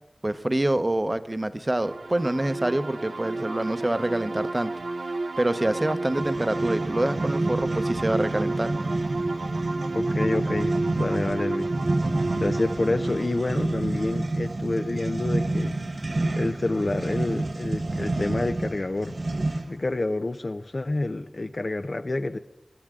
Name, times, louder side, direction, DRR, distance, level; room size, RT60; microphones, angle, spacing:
voice 1, 0.2-4.7 5.4-8.7, right 1 dB, 30° right, 11 dB, 0.8 m, -26 dB
sound 1, 1.7-15.2, right 2 dB, 90° right, 0.8 m, -32 dB
sound 2, 6.1-19.8, right 2 dB, 60° right, 0.9 m, -29 dB
voice 2, 9.9-11.7 12.4-15.8 16.3-19.1 19.6-22.4, left 2 dB, 55° left, 8 dB, 0.6 m, -28 dB
25.0 x 11.5 x 3.7 m, 0.86 s
wide cardioid pair, 60°, 0 cm